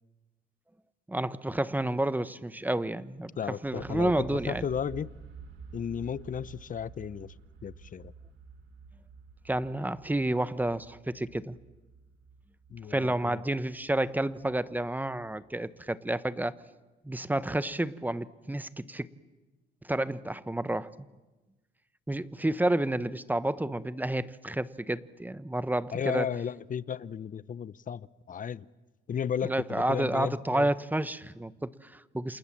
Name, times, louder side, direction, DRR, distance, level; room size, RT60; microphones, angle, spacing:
voice 1, 1.1-4.6 9.4-11.6 12.9-16.5 17.0-19.1 19.8-20.9 22.1-26.3 29.4-32.4, right 1 dB, 10° right, 15 dB, 1.0 m, -30 dB
voice 2, 3.4-5.1 5.7-7.3 7.6-8.1 12.7-13.4 25.9-28.7 29.1-30.7, left 8 dB, 40° left, 19 dB, 0.8 m, -34 dB
sound 1, 3.6-15.5, right 6 dB, 90° right, 3.2 m, -50 dB
28.5 x 27.5 x 7.6 m, 1.1 s
cardioid pair, 90°, 20 cm